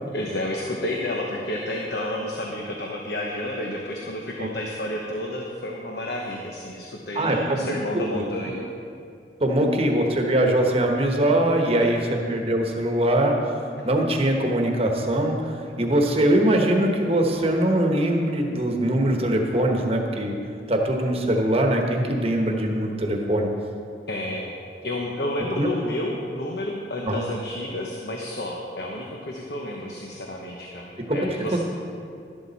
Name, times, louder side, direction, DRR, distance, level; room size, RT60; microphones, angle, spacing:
voice 1, 0.1-8.6 11.8-11.9 24.1-24.5 24.8-31.6, left 1 dB, 70° left, -1 dB, 1.1 m, -30 dB
voice 2, 7.1-7.7 8.1-8.2 9.4-12.0 12.3-13.6 13.8-20.3 20.7-23.5 25.5-25.7 27.0-27.2 31.1-31.2 31.5-31.6, right 1 dB, 35° right, 2 dB, 1.2 m, -22 dB
12.0 x 12.0 x 4.2 m, 2.5 s
head